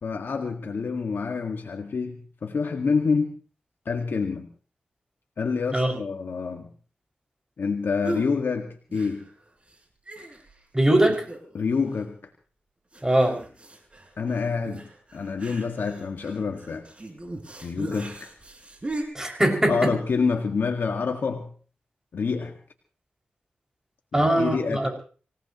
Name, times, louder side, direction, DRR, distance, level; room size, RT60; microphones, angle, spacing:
voice 1, 0.0-3.3 3.9-4.5 5.4-6.7 7.6-9.3 11.5-12.2 14.2-16.8 17.6-18.3 19.7-21.5 22.1-22.6 24.1-24.9, left 5 dB, 75° left, 4 dB, 1.9 m, -27 dB
sound 1, 8.0-8.3 8.9-9.4 9.7-9.8 10.1-10.6 11.1-11.6 11.9-12.0 12.9-19.0, right 2 dB, 35° right, 5.7 m, -38 dB
voice 2, 10.7-11.2 13.0-13.3 19.1-19.7 24.1-24.9, right 1 dB, 15° right, 1 dB, 6.3 m, -21 dB
26.0 x 17.5 x 3.1 m, 0.39 s
cardioid pair, 65°, 4 cm